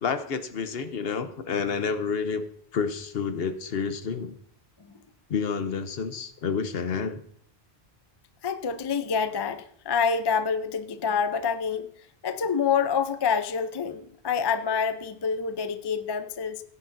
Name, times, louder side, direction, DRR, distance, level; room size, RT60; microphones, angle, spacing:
voice 1, 0.0-2.4 2.7-4.4 5.3-7.2, left 5 dB, 65° left, 1.0 m, -29 dB
voice 2, 8.4-11.9 12.2-16.6, left 6 dB, 35° left, 0.4 m, -27 dB
16.0 x 9.7 x 2.6 m
omnidirectional pair, 1.1 m